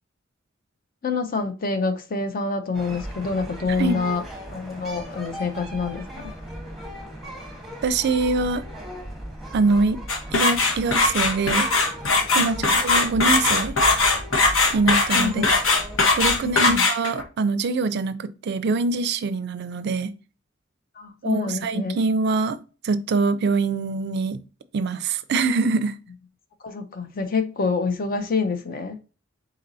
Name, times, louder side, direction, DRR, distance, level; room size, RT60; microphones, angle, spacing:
voice 1, 1.0-4.2 4.5-6.3 12.4-12.7 15.1-15.5 16.4-16.8 21.0-22.0 26.6-29.0, left 4 dB, 45° left, 0.6 m, -27 dB
sound 1, 2.7-16.7, equal, ahead, 1.1 m, -37 dB
voice 2, 7.8-8.6 9.5-10.0 10.3-11.7 12.3-13.8 14.7-15.4 16.1-20.1 21.2-22.6 22.8-24.4 24.7-25.9, right 3 dB, 60° right, 0.4 m, -24 dB
sound 2, 10.1-17.2, left 3 dB, 85° left, 1.0 m, -20 dB
4.2 x 4.0 x 2.6 m
head